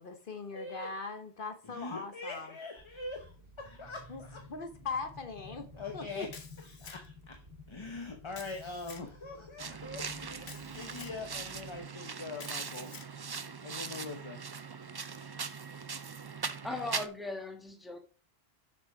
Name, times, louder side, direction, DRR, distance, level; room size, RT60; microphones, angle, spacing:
voice 1, 0.0-2.5 4.1-4.2 4.5-5.7 5.9-6.3, left 4 dB, 55° left, 1.2 m, -40 dB
voice 2, 0.5-0.9 1.6-3.3 3.6-4.5 5.7-12.9 13.6-14.4, left 3 dB, 30° left, 1.0 m, -43 dB
sound 1, 2.8-11.9, left 2 dB, 55° right, 2.3 m, -53 dB
Camera, 6.3-7.3 8.3-9.1 10.4-11.2 12.4-13.1, left 5 dB, 75° left, 1.4 m, -50 dB
sound 2, 9.6-17.1, right 5 dB, 35° right, 0.4 m, -40 dB
voice 3, 16.6-18.0, left 2 dB, ahead, 1.2 m, -38 dB
7.2 x 6.0 x 4.7 m
omnidirectional pair, 1.1 m